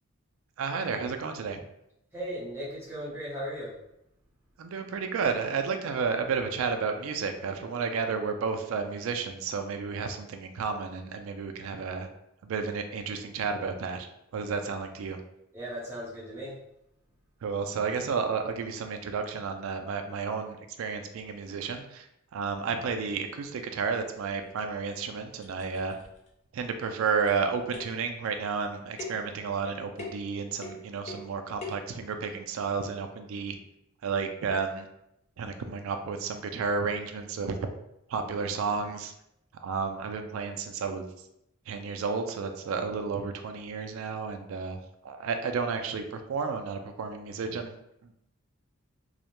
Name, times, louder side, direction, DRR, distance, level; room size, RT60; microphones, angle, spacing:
voice 1, 0.6-1.6 4.6-12.1 12.4-14.1 14.3-15.2 17.4-26.0 26.5-33.6 34.0-34.9 35.4-37.6 38.1-39.1 39.6-41.1 41.7-44.8 45.0-48.1, right 5 dB, 70° right, 6 dB, 0.3 m, -32 dB
voice 2, 2.1-3.7 15.5-16.5, equal, 10° right, -8 dB, 0.7 m, -37 dB
sound 1, 24.4-24.5 25.0-25.1 25.4-26.3 27.2-27.5 27.7-28.1 29.0-29.3 30.0-30.3 30.6-31.3 31.6-31.9, left 3 dB, 30° left, 0.3 m, -41 dB
2.3 x 2.1 x 2.9 m, 0.80 s
head